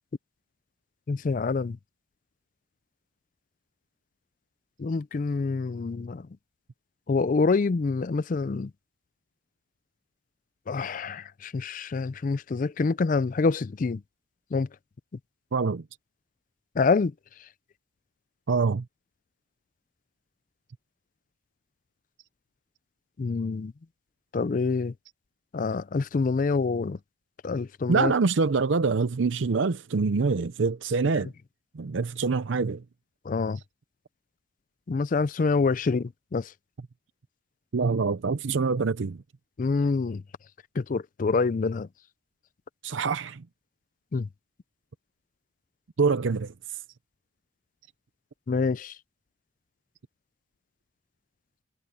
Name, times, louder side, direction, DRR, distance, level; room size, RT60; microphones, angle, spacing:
voice 1, 1.1-1.8 4.8-6.3 7.1-8.7 10.7-14.0 14.5-14.7 16.8-17.1 23.2-23.7 24.3-24.9 25.5-27.0 27.4-28.1 33.3-33.6 34.9-36.5 39.6-40.2 40.8-41.9 44.1-44.3 48.5-48.9, left 4 dB, 40° left, 0.4 m, -26 dB
voice 2, 15.5-15.8 18.5-18.8 27.9-31.3 31.8-32.8 37.7-39.2 42.8-43.4 46.0-46.5, right 4 dB, 75° right, 0.6 m, -25 dB
head